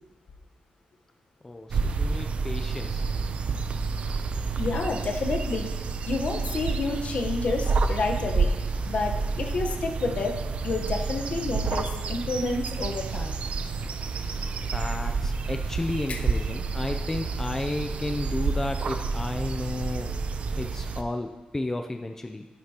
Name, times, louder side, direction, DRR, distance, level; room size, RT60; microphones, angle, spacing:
voice 1, 1.4-3.0 14.7-20.1 20.6-22.5, left 2 dB, 15° left, 5 dB, 0.4 m, -32 dB
sound 1, 1.7-21.0, right 4 dB, 55° right, 0.6 m, -29 dB
voice 2, 4.6-5.7 6.1-8.5 8.9-10.4 10.6-13.4 16.1-16.2, left 3 dB, 55° left, 3 dB, 1.1 m, -29 dB
11.0 x 10.5 x 2.9 m, 1.2 s
wide cardioid pair, 135°, 3 cm